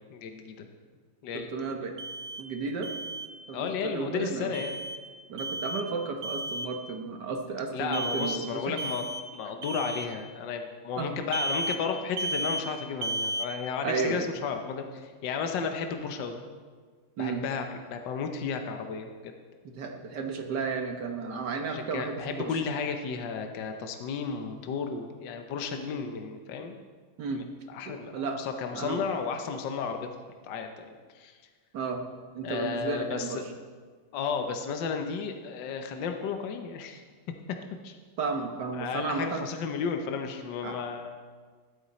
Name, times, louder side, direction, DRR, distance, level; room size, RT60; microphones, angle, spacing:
voice 1, 0.1-0.7 1.2-1.5 3.5-4.8 7.7-9.0 9.3-16.4 17.2-17.6 17.9-19.3 21.7-26.7 27.7-30.1 30.4-31.4 32.4-33.6 34.1-37.0 37.8-38.0 38.7-41.1, left 6 dB, 75° left, 5 dB, 1.6 m, -33 dB
voice 2, 1.3-1.9 2.4-2.9 3.5-4.5 5.3-8.7 11.0-11.2 13.8-14.3 17.2-17.4 19.6-22.5 27.2-27.4 27.8-28.4 28.7-29.0 31.7-32.0 32.3-33.4 38.2-39.5 40.6-40.8, right 4 dB, 65° right, 4 dB, 1.7 m, -33 dB
Alarm, 2.0-2.4 2.8-3.3 4.5-5.0 5.4-5.9 6.2-6.7 7.9-8.4 8.8-9.2 9.6-10.1 11.3-11.8 12.2-12.6 13.0-13.5, right 1 dB, 85° right, 1.5 m, -33 dB
14.0 x 11.5 x 4.2 m, 1.5 s
omnidirectional pair, 2.0 m